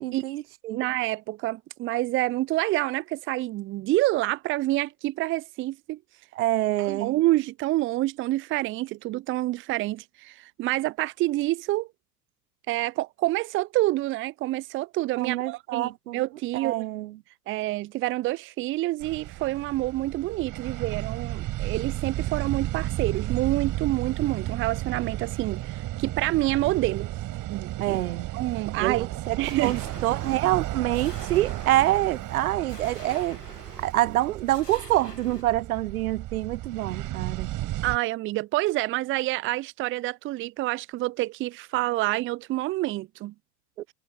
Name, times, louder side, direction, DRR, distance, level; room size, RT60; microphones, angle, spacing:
voice 1, 0.0-0.8 6.4-7.2 15.2-16.2 16.6-17.1 27.8-28.3 28.8-29.8 30.0-33.4 33.8-37.5, right 15 dB, 65° right, 0.7 m, -26 dB
voice 2, 0.7-6.0 6.8-11.9 12.7-16.8 17.5-27.1 27.5-28.0 28.3-29.1 29.4-29.8 37.8-43.3, right 17 dB, 25° right, 0.6 m, -27 dB
sound 1, 19.0-38.0, right 15 dB, 40° right, 6.6 m, -33 dB
sound 2, 29.4-35.4, left 2 dB, 90° left, 2.3 m, -47 dB
figure-of-eight pair, 75°, 47 cm